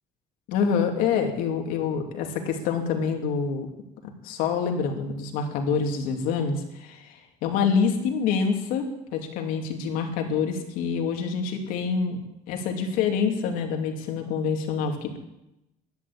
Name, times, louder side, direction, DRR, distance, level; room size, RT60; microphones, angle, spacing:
voice 1, 0.5-3.7 4.2-12.2 12.5-15.2, left 6 dB, 90° left, 4 dB, 2.8 m, -26 dB
13.5 x 9.6 x 10.0 m, 0.87 s
cardioid pair, 175°, 14 cm